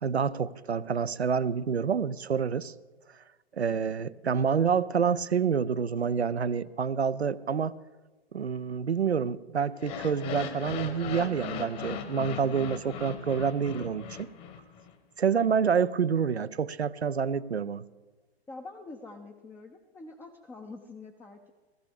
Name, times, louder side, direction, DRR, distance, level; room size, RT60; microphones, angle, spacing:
voice 1, 0.0-2.7 3.6-7.8 8.3-14.3 15.2-17.8, right 6 dB, 90° right, 17 dB, 0.5 m, -28 dB
sound 1, 9.7-14.9, left 7 dB, 30° left, 1.2 m, -38 dB
voice 2, 18.5-21.5, left 3 dB, 5° left, 3 dB, 0.5 m, -45 dB
16.5 x 15.0 x 3.5 m, 1.2 s
figure-of-eight pair, 110°, 31 cm